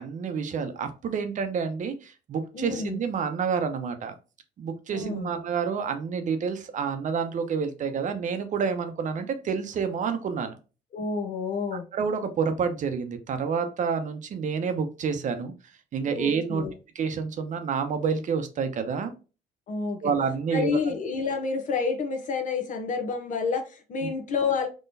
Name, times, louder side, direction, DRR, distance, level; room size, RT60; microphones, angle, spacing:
voice 1, 0.0-4.1 4.6-10.6 11.9-15.5 15.9-16.7 16.9-19.1 20.0-20.8 24.0-24.1, right 6 dB, 50° right, 0.7 m, -28 dB
voice 2, 2.5-3.0 4.9-5.3 10.9-11.9 16.1-16.7 19.7-20.1 20.5-24.7, left 4 dB, 50° left, 0.8 m, -29 dB
3.7 x 3.1 x 2.7 m
cardioid pair, 110°, 17 cm